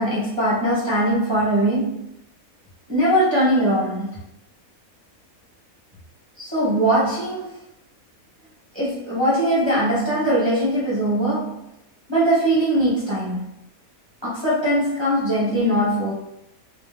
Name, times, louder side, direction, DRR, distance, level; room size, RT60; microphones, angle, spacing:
voice 1, 0.0-2.1 2.9-4.2 6.4-7.5 8.7-11.6 12.1-13.5 14.2-16.1, right 1 dB, 20° right, -9 dB, 1.0 m, -21 dB
3.7 x 2.6 x 2.3 m, 0.79 s
omnidirectional pair, 1.5 m